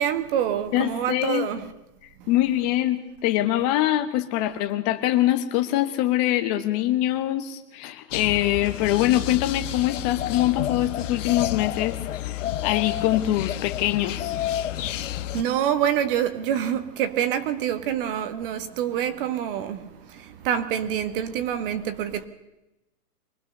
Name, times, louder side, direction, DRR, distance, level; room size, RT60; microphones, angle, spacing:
voice 1, 0.0-1.6 2.2-2.3 14.9-22.3, right 9 dB, 35° right, 1.6 m, -26 dB
voice 2, 0.7-1.5 2.3-12.0 12.3-14.3, left 14 dB, 25° left, 1.2 m, -24 dB
sound 1, 8.1-15.4, left 12 dB, 50° left, 1.2 m, -30 dB
24.0 x 19.0 x 6.7 m
hypercardioid pair, 150°, 48 cm